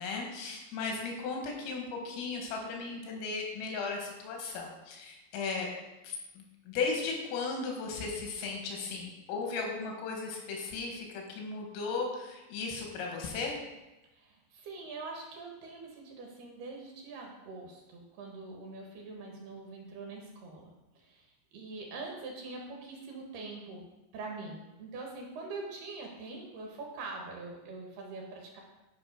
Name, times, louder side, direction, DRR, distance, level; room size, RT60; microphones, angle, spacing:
voice 1, 0.0-5.7 6.0-13.5, left 4 dB, 85° left, 1 dB, 4.3 m, -36 dB
voice 2, 14.1-20.7 21.0-28.6, right 3 dB, 65° right, 0 dB, 2.9 m, -44 dB
12.0 x 5.4 x 5.3 m, 1.0 s
omnidirectional pair, 5.7 m